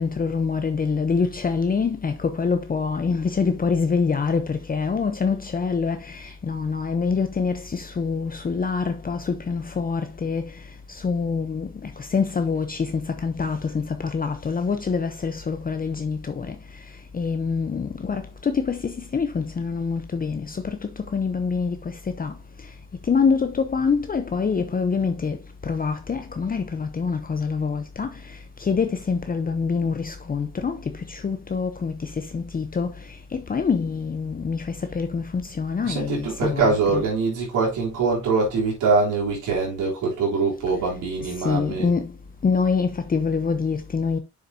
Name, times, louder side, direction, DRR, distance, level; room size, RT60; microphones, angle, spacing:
voice 1, 0.0-6.0 6.5-10.4 11.0-11.7 12.1-16.5 17.1-20.4 20.7-20.8 21.1-21.8 22.2-22.3 23.1-25.4 25.7-28.1 28.7-30.8 31.2-31.9 32.3-32.9 33.3-34.6 34.9-35.2 35.6-37.0 41.4-42.0 42.4-44.2, left 5 dB, 30° left, 0.8 m, -25 dB
voice 2, 35.8-41.9, right 4 dB, 85° right, 3.6 m, -23 dB
7.0 x 6.6 x 2.8 m
cardioid pair, 90°, 30 cm